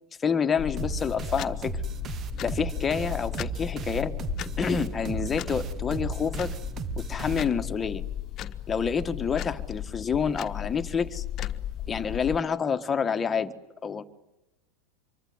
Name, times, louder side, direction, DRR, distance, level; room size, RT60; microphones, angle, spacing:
voice 1, 0.2-1.8 2.4-4.1 4.6-6.6 7.0-8.0 8.7-11.2 11.9-13.5 13.8-14.0, left 6 dB, 25° left, 8 dB, 1.6 m, -28 dB
sound 1, 0.6-12.4, left 12 dB, 40° left, 1.4 m, -35 dB
sound 2, 0.8-7.9, right 9 dB, 35° right, 1.2 m, -36 dB
26.0 x 24.0 x 9.6 m, 0.94 s
hypercardioid pair, 100°, 0 cm